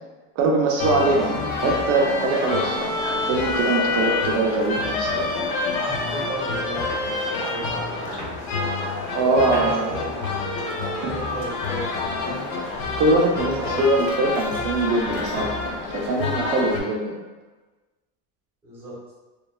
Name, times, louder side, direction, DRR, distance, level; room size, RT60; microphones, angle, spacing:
voice 1, 0.4-5.3 9.1-9.9 11.0-11.1 13.0-17.2, right 2 dB, 45° right, -1 dB, 0.5 m, -22 dB
sound 1, 0.8-16.8, left 3 dB, 60° left, 0.5 m, -27 dB
sound 2, 5.4-7.7 8.0-9.0 9.3-9.8 10.0-10.5 10.8-11.1 11.5-11.9 12.2-12.7 13.0-13.3 13.6-14.0 14.4-14.7, equal, 20° left, 0.9 m, -38 dB
voice 2, 5.6-8.4 9.2-10.5 11.0-12.7 13.4-13.8 18.6-18.9, right 1 dB, 5° right, -8 dB, 0.7 m, -35 dB
3.0 x 2.2 x 2.2 m, 1.2 s
cardioid pair, 170°, 34 cm